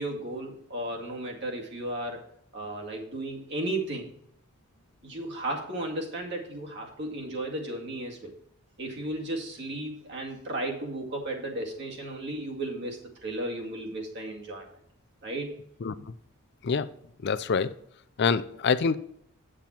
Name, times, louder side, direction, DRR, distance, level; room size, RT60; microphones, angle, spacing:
voice 1, 0.0-2.2 2.5-4.1 5.0-8.3 8.8-14.7 15.2-15.6, right 1 dB, 50° right, 2.1 m, -34 dB
voice 2, 17.2-17.7 18.2-19.0, left 5 dB, 50° left, 0.4 m, -25 dB
8.9 x 7.5 x 4.3 m
head